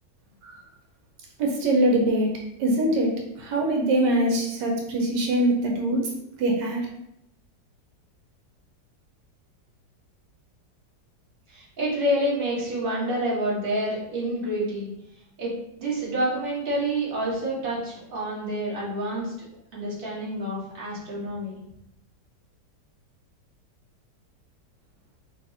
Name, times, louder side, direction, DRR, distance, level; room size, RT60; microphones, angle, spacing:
voice 1, 1.4-2.3 2.6-6.0 6.4-6.9, right 1 dB, 80° right, 1 dB, 1.4 m, -23 dB
voice 2, 11.5-14.9 15.4-15.5 15.8-19.5 19.7-21.6, right 1 dB, 35° right, -6 dB, 1.4 m, -28 dB
5.9 x 2.7 x 2.8 m, 0.80 s
omnidirectional pair, 1.9 m